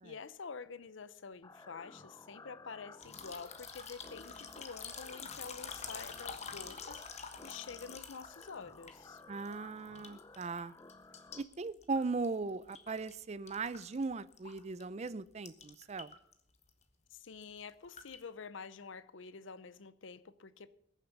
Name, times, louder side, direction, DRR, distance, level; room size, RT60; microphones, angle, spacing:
voice 1, 0.0-7.0 7.4-9.2 17.1-20.7, left 5 dB, 75° left, 0.7 m, -48 dB
sound 1, 1.4-11.4, left 3 dB, 20° left, 0.5 m, -55 dB
sound 2, 3.0-9.5 9.8-10.6 10.9-13.2 13.5-14.8 15.1-15.2 15.4-16.3 16.6-16.8 17.2-18.2, left 6 dB, 35° left, 1.3 m, -47 dB
voice 2, 9.3-10.7 11.4-16.1, right 4 dB, 35° right, 0.4 m, -38 dB
20.5 x 7.2 x 5.9 m
head